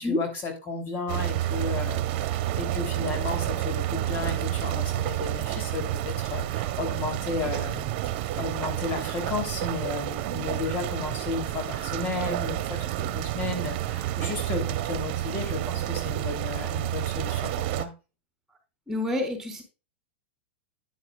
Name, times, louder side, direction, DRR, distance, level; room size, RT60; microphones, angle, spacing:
voice 1, 0.0-17.5 17.8-17.9, left 4 dB, 35° left, 5 dB, 3.2 m, -33 dB
sound 1, 1.1-17.9, right 14 dB, 50° right, 1.2 m, -30 dB
voice 2, 18.9-19.6, left 2 dB, 5° right, 4 dB, 4.0 m, -28 dB
10.5 x 9.7 x 2.4 m, 0.30 s
hypercardioid pair, 115°, 6 cm